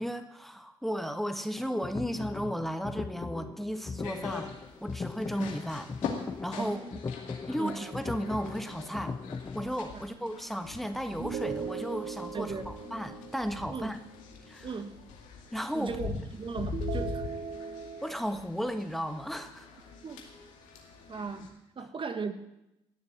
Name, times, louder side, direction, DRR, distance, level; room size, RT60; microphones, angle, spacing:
voice 1, 0.0-4.5 4.8-5.9 6.4-6.8 7.5-9.1 9.5-14.0 14.5-14.7 15.5-16.0 18.0-19.7 21.8-21.9, equal, ahead, 8 dB, 1.5 m, -34 dB
sound 1, 1.6-9.7, left 4 dB, 25° left, 0.4 m, -39 dB
sound 2, 4.0-21.5, left 5 dB, 80° left, 2.3 m, -43 dB
voice 2, 6.6-7.0 7.6-7.8 9.9-10.0 12.3-12.7 13.7-13.9 14.6-15.0 15.7-17.3 20.0-20.2 21.1-22.3, right 5 dB, 40° right, 9 dB, 1.6 m, -37 dB
sound 3, 7.6-9.2 11.2-14.4 16.7-18.1, right 6 dB, 55° right, 1.1 m, -40 dB
18.5 x 7.0 x 8.9 m, 0.89 s
supercardioid pair, 55°, 13 cm